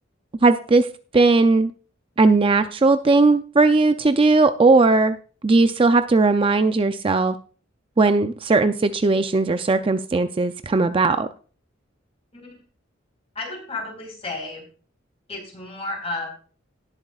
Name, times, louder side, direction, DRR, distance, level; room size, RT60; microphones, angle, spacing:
voice 1, 0.4-0.9 1.1-1.7 2.2-5.2 5.4-7.3 8.0-11.3, right 3 dB, 25° right, 9 dB, 0.4 m, -18 dB
voice 2, 13.3-14.7 15.3-16.3, left 2 dB, 30° left, 1 dB, 4.3 m, -32 dB
18.0 x 7.9 x 2.4 m, 0.38 s
head